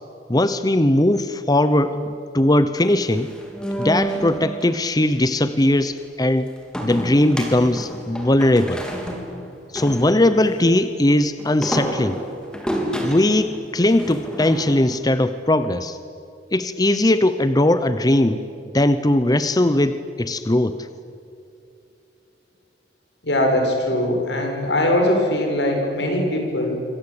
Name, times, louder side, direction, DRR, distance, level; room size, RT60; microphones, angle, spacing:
voice 1, 0.3-3.3 3.8-6.5 6.8-8.8 9.7-12.2 13.0-16.0 16.5-18.4 18.7-20.8, left 1 dB, 20° left, 12 dB, 0.8 m, -19 dB
sound 1, 2.8-4.7 6.7-10.6 11.4-15.0, equal, 5° left, 3.7 m, -29 dB
voice 2, 23.2-26.8, left 1 dB, 80° left, 2 dB, 6.9 m, -21 dB
27.0 x 25.5 x 8.7 m, 2.5 s
head